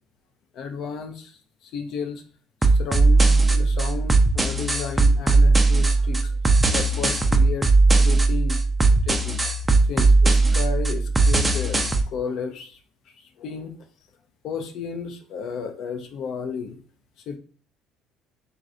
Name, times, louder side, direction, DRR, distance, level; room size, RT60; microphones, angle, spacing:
voice 1, 0.5-2.2 2.7-6.3 6.7-8.6 9.1-9.4 9.9-12.8 13.4-13.7 14.4-16.8 17.3-17.4, left 6 dB, 60° left, 6 dB, 0.5 m, -33 dB
sound 1, 2.6-12.0, right 3 dB, 20° right, 0.4 m, -18 dB
3.1 x 2.5 x 2.5 m, 0.42 s
hypercardioid pair, 65°, 0 cm